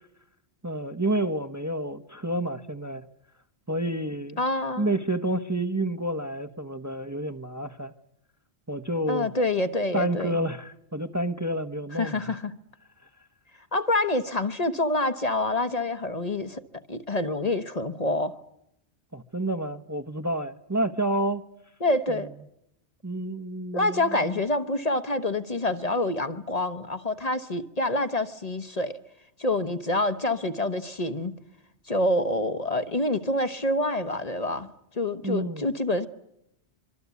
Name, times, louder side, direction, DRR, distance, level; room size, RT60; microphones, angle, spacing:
voice 1, 0.6-3.0 3.7-4.4 4.8-7.9 8.7-9.3 9.9-12.4 19.1-21.4 23.0-24.0 35.2-35.7, right 1 dB, 15° right, 1.0 m, -29 dB
voice 2, 4.4-4.9 9.1-10.4 11.9-12.6 13.7-16.6 16.9-18.4 21.8-22.3 23.7-29.0 29.4-31.3 31.9-34.7 34.9-36.1, left 2 dB, 35° left, 1.2 m, -27 dB
25.5 x 24.5 x 8.3 m
omnidirectional pair, 1.1 m